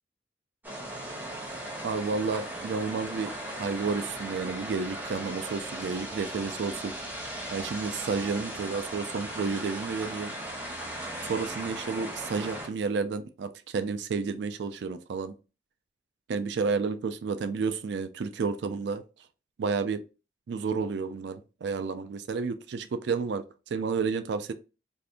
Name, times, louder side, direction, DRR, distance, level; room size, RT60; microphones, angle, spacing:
sound 1, 0.6-12.7, right 1 dB, 10° right, 0.8 m, -38 dB
voice 1, 1.8-3.3 3.6-6.9 7.5-10.3 11.2-15.3 16.3-19.0 19.6-20.0 20.5-23.4 23.7-24.5, right 5 dB, 80° right, 0.4 m, -31 dB
2.6 x 2.5 x 3.4 m
head